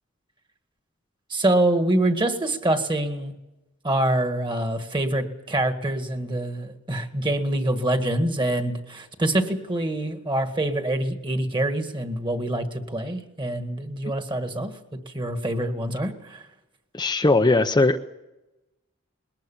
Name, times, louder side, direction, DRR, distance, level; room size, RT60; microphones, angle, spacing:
voice 1, 1.3-3.3 3.8-14.7 15.1-16.4, right 1 dB, 25° right, 7 dB, 1.8 m, -25 dB
voice 2, 16.9-18.0, left 2 dB, 20° left, 5 dB, 0.6 m, -19 dB
21.5 x 18.5 x 7.2 m, 0.99 s
head